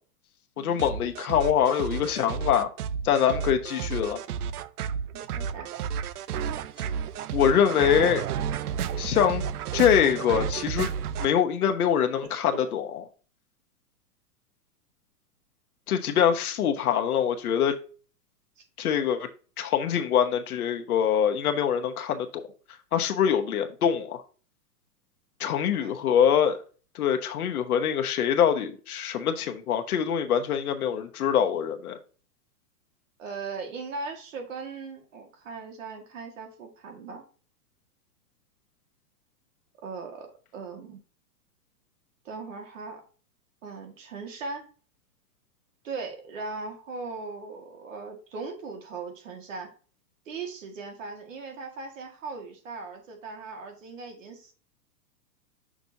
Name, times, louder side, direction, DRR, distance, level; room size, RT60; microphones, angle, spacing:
voice 1, 0.6-2.7 3.0-4.2 7.3-8.2 9.0-9.4 9.7-10.9 11.2-13.0 15.9-17.7 18.8-19.3 19.6-22.4 22.9-24.2 25.4-26.6 26.9-32.0, left 8 dB, 60° left, 1.1 m, -24 dB
sound 1, 0.8-11.3, right 8 dB, 65° right, 0.6 m, -32 dB
voice 2, 5.1-5.7 18.6-18.7 25.8-26.0 33.2-37.2 39.8-41.0 42.3-43.0 43.6-44.7 45.8-49.7 50.3-54.5, right 4 dB, 50° right, 1.9 m, -39 dB
6.8 x 6.1 x 2.7 m
hypercardioid pair, 170°, 49 cm